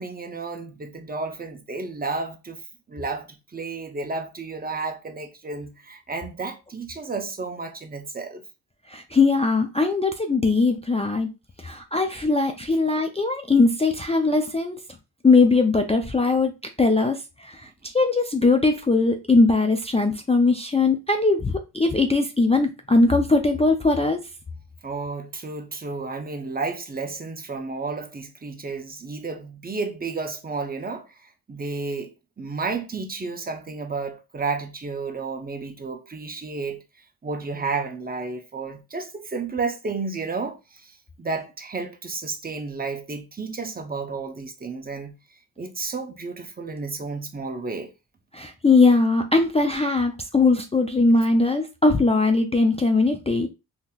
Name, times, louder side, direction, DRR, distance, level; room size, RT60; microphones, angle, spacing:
voice 1, 0.0-2.6 2.9-8.4 24.8-31.1 31.5-32.1 32.4-36.8 37.2-40.9 41.2-45.1 45.6-47.9, right 4 dB, 25° right, 0.7 m, -32 dB
voice 2, 8.9-11.3 11.6-14.8 15.2-16.5 16.8-17.6 17.9-24.2 48.3-53.5, left 3 dB, 15° left, 0.3 m, -20 dB
3.7 x 2.8 x 2.3 m
cardioid pair, 75°, 40 cm